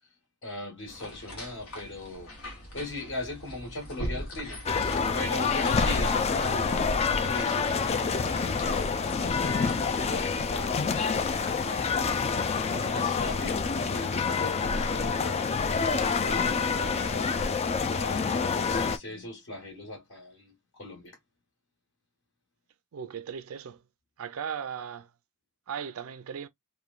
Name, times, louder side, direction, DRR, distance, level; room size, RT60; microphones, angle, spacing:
voice 1, 0.4-2.3 2.7-4.6 5.1-15.5 15.9-17.3 17.9-20.5 20.8-21.2, left 2 dB, 65° left, 1.5 m, -39 dB
sound 1, 0.9-12.6, equal, 80° left, 1.2 m, -42 dB
sound 2, 4.7-19.0, left 5 dB, 30° left, 0.3 m, -27 dB
voice 2, 22.9-23.8 24.2-25.1 25.7-26.5, right 7 dB, 75° right, 0.4 m, -37 dB
3.1 x 2.2 x 2.3 m
head